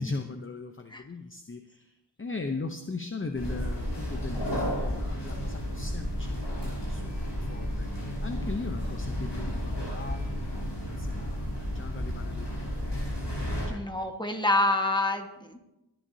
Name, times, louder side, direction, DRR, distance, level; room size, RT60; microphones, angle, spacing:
voice 1, 0.0-7.9 8.2-11.5 11.7-13.8, left 3 dB, 30° left, 6 dB, 0.7 m, -39 dB
sound 1, 3.3-13.7, equal, 80° left, 5.3 m, -32 dB
voice 2, 13.7-15.6, left 2 dB, 10° left, 4 dB, 1.5 m, -27 dB
22.0 x 10.5 x 2.8 m, 0.94 s
wide cardioid pair, 65°, 40 cm